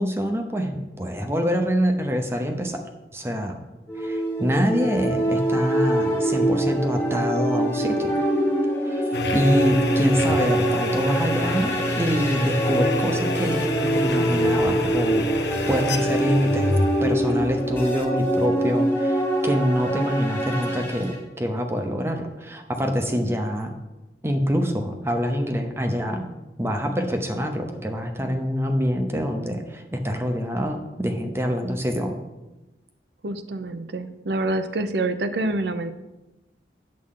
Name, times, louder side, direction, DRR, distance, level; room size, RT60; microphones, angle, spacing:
voice 1, 0.0-2.8 3.1-3.6 4.0-8.2 8.8-15.2 15.7-16.7 17.0-23.7 24.2-32.2, equal, 15° right, 4 dB, 0.7 m, -25 dB
sound 1, 3.9-21.2, right 1 dB, 15° left, 0.9 m, -24 dB
sound 2, 9.1-18.3, left 1 dB, 75° left, 0.9 m, -28 dB
voice 2, 33.2-35.9, right 2 dB, 75° right, 11 dB, 0.6 m, -26 dB
8.5 x 7.5 x 3.7 m, 1.1 s
head